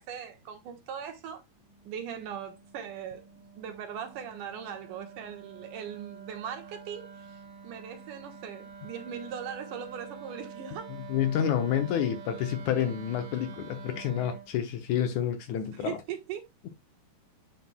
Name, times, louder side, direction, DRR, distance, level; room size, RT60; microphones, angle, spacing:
voice 1, 0.0-1.4 1.8-3.3 3.6-7.4 7.6-10.9 15.8-16.4, right 8 dB, 70° right, 2.6 m, -39 dB
Wind instrument woodwind instrument, 1.6-14.5, right 5 dB, 50° right, 1.9 m, -47 dB
voice 2, 11.1-16.0, left 9 dB, 70° left, 2.0 m, -29 dB
9.3 x 5.9 x 2.2 m
omnidirectional pair, 4.0 m